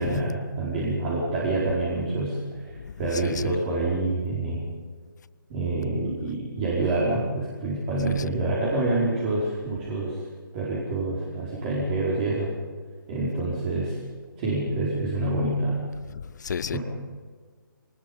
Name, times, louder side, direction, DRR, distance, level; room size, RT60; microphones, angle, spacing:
voice 1, 0.0-4.6 5.5-10.2 10.5-12.5 13.1-14.0 14.4-15.8 16.7-16.8, right 2 dB, 30° right, 5.1 m, -27 dB
voice 2, 16.1-16.8, left 6 dB, 55° left, 0.7 m, -32 dB
23.5 x 20.5 x 5.5 m
figure-of-eight pair, 145°, 12 cm